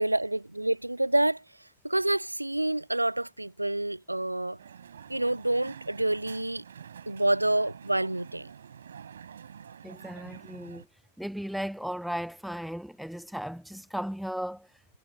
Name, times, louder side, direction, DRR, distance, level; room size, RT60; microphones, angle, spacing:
voice 1, 0.0-1.4 1.8-4.6 5.1-6.6 7.1-8.5, right 1 dB, 85° right, 0.3 m, -27 dB
Crowd, 4.6-10.8, right 8 dB, 70° right, 6.6 m, -47 dB
voice 2, 9.8-10.9 11.2-14.7, equal, ahead, 0.8 m, -36 dB
figure-of-eight pair, 90°, 0 cm